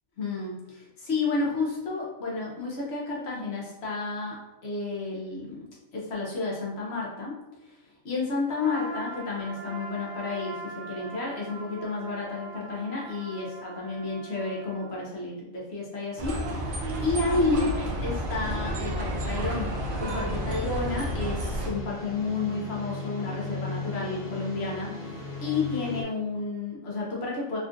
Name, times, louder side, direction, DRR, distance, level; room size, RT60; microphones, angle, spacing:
voice 1, 0.2-5.7 5.9-7.3 7.6-7.8 8.0-17.7 18.0-27.6, left 3 dB, 60° left, -3 dB, 0.8 m, -31 dB
Trumpet, 8.5-14.9, right 2 dB, 40° left, 1.2 m, -42 dB
sound 1, 16.2-21.7, right 1 dB, 80° right, 0.4 m, -31 dB
sound 2, 17.8-26.0, left 3 dB, 75° left, 0.3 m, -38 dB
3.5 x 2.4 x 2.5 m, 0.98 s
omnidirectional pair, 1.4 m